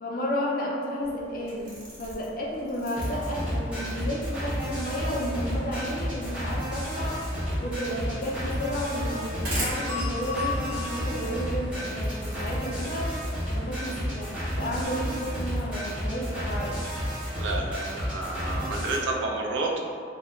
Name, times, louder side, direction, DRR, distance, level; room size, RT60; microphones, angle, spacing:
voice 1, 0.0-7.2 7.6-13.1 13.5-16.8, equal, 50° left, -2 dB, 0.4 m, -32 dB
sound 1, 1.0-15.6, right 1 dB, 55° right, 0.8 m, -43 dB
sound 2, 3.0-19.0, equal, 5° right, 0.8 m, -31 dB
sound 3, 7.1-17.8, left 5 dB, 15° left, 1.0 m, -42 dB
voice 2, 17.3-19.8, right 2 dB, 90° right, 0 dB, 0.4 m, -30 dB
2.9 x 2.0 x 2.3 m, 2.2 s
head